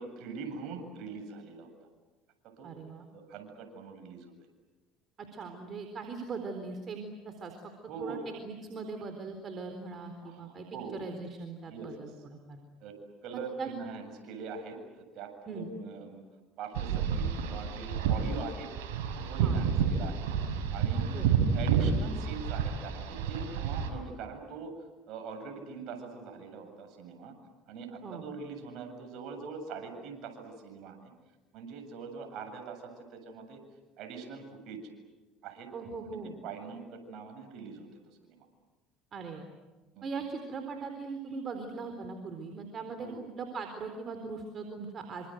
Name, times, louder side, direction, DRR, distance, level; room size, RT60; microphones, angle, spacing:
voice 1, 0.0-1.7 2.6-2.7 3.1-4.3 7.9-8.2 10.2-11.0 11.7-12.0 12.8-12.9 13.2-16.2 16.6-18.7 19.2-20.3 20.7-21.1 21.5-24.7 25.1-27.3 27.7-31.1 31.5-33.6 34.0-34.9 35.4-35.7 36.1-38.5 39.9-40.1 43.0-43.2, right 5 dB, 65° right, 5 dB, 7.7 m, -42 dB
voice 2, 2.6-3.1 5.2-7.6 8.0-8.2 8.4-10.7 10.9-12.6 13.3-13.7 15.5-15.7 19.4-19.6 21.1-21.3 28.0-28.2 35.7-36.3 39.1-39.5 40.0-45.3, right 4 dB, 40° right, 6 dB, 4.0 m, -40 dB
sound 1, 16.7-23.9, right 6 dB, 85° right, 5.8 m, -30 dB
27.5 x 26.0 x 8.0 m, 1.2 s
supercardioid pair, 85°, 0 cm